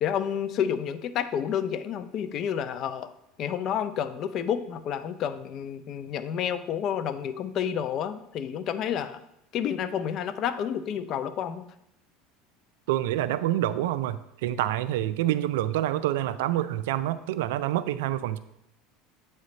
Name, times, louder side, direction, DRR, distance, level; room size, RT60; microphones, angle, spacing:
voice 1, 0.0-3.1 3.4-9.2 9.5-11.7, left 8 dB, 50° left, 13 dB, 0.4 m, -30 dB
voice 2, 12.9-18.4, right 13 dB, 80° right, 14 dB, 0.3 m, -27 dB
8.2 x 3.2 x 3.9 m, 0.80 s
supercardioid pair, 100°, 0 cm